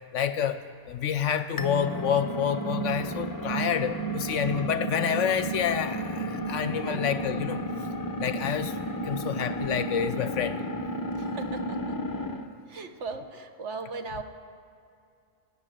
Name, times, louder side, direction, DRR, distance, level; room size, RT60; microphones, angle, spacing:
voice 1, 0.1-0.6 0.9-7.6 8.2-8.7 9.0-10.6, left 8 dB, 65° left, 11 dB, 0.9 m, -28 dB
sound 1, 1.6-12.5, right 1 dB, 25° left, 0.5 m, -32 dB
voice 2, 6.7-7.3 11.1-12.0 12.7-14.2, right 4 dB, 55° right, 7 dB, 1.2 m, -38 dB
15.0 x 9.0 x 9.3 m, 2.5 s
omnidirectional pair, 1.5 m